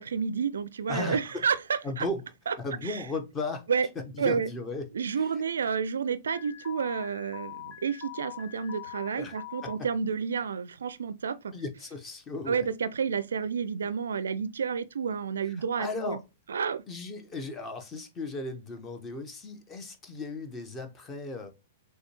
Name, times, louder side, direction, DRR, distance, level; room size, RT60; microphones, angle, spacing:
voice 1, 0.0-2.0 2.5-2.6 2.8-3.0 3.7-3.9 4.2-4.5 4.9-11.5 12.5-16.2 16.5-16.8, right 6 dB, 65° right, 0.4 m, -30 dB
voice 2, 0.9-1.4 1.8-2.2 2.6-3.6 3.9-4.9 5.2-5.3 9.2-9.3 9.6-9.7 11.5-12.7 15.5-16.2 16.9-21.5, left 2 dB, 20° left, 0.8 m, -36 dB
Alarm, 6.3-9.7, left 13 dB, 45° left, 1.8 m, -43 dB
6.4 x 2.2 x 2.9 m
figure-of-eight pair, 105°, 0 cm